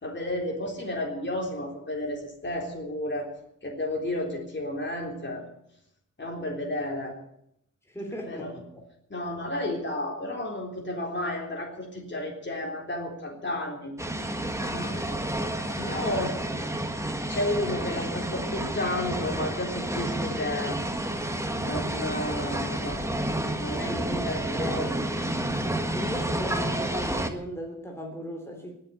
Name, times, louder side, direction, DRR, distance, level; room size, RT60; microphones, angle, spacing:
voice 1, 0.0-3.3 3.6-5.4 6.2-7.2 8.3-8.6 9.1-13.9 14.7-15.5 15.7-16.4 17.2-20.8 21.6-23.2 23.5-24.9, left 1 dB, 35° left, 0 dB, 3.8 m, -32 dB
voice 2, 7.9-8.6 23.9-25.0 25.9-28.8, equal, 10° left, 1 dB, 3.2 m, -37 dB
sound 1, 14.0-27.3, right 1 dB, 10° right, 1.5 m, -30 dB
19.5 x 7.5 x 9.3 m, 0.74 s
wide cardioid pair, 120°, 32 cm